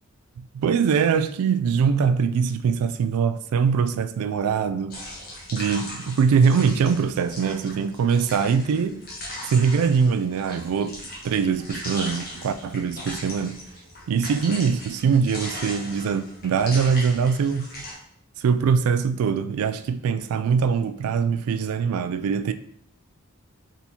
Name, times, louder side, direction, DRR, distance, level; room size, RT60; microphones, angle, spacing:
voice 1, 0.4-5.0 5.5-9.0 9.4-11.0 11.2-13.6 14.1-17.7 18.4-22.5, right 6 dB, 80° right, 0.3 m, -22 dB
sound 1, 4.9-17.9, left 1 dB, 40° left, 1.1 m, -38 dB
4.2 x 3.5 x 2.9 m
head